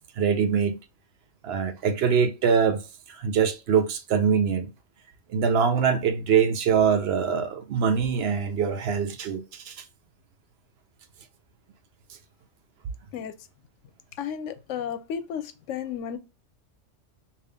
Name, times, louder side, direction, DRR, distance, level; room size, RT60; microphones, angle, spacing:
voice 1, 0.2-0.8 1.4-2.8 3.1-4.7 5.3-9.8, right 6 dB, 65° right, 0.7 m, -23 dB
voice 2, 14.2-16.2, left 8 dB, 90° left, 0.9 m, -33 dB
3.5 x 2.7 x 3.4 m
omnidirectional pair, 1.2 m